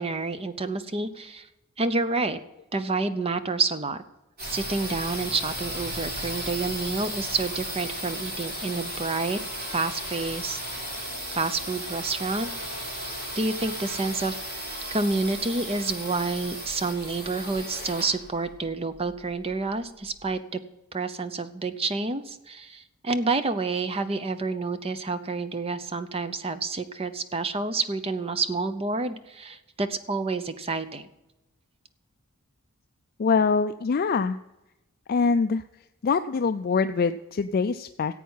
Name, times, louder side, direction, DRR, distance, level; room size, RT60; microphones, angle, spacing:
voice 1, 0.0-1.5 1.8-2.4 2.7-4.0 4.4-10.6 11.3-20.6 20.9-31.1, right 3 dB, 25° right, 11 dB, 0.7 m, -29 dB
sound 1, 4.4-20.0, equal, 45° right, 4.3 m, -35 dB
voice 2, 33.2-34.4 35.1-35.6 36.0-38.1, left 5 dB, 40° left, 10 dB, 0.3 m, -24 dB
15.0 x 8.4 x 5.6 m, 0.97 s
head